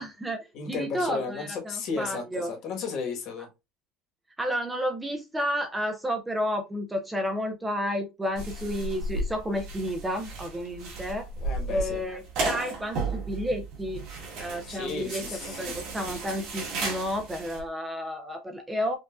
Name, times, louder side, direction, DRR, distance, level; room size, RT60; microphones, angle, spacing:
voice 1, 0.0-2.5 4.4-11.3 11.7-14.0 14.4-15.2 15.6-19.0, equal, 10° right, 0.4 m, -31 dB
voice 2, 0.5-3.5 11.4-12.0 14.6-15.8, left 5 dB, 45° left, 1.2 m, -34 dB
sound 1, 8.4-17.6, right 3 dB, 50° right, 1.7 m, -34 dB
5.2 x 2.4 x 2.3 m
cardioid pair, 170°, 0 cm